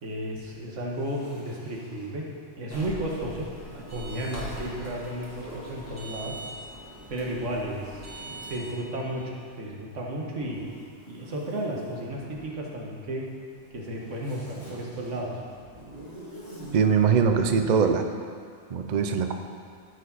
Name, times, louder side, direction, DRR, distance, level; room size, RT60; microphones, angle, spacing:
voice 1, 0.0-2.3 2.6-6.3 7.1-9.2 9.6-10.6 11.1-13.2 13.7-15.3, right 1 dB, 75° right, -2 dB, 1.6 m, -33 dB
Zipper (clothing), 0.8-2.2 3.8-4.9 6.3-9.5 10.3-12.6 13.5-17.5, equal, 50° left, 2.5 m, -47 dB
sound 1, 2.7-8.7, right 1 dB, 10° right, 1.9 m, -41 dB
voice 2, 16.7-18.1 18.7-19.3, right 6 dB, 55° right, 6 dB, 0.5 m, -22 dB
14.0 x 5.0 x 4.2 m, 2.2 s
omnidirectional pair, 1.3 m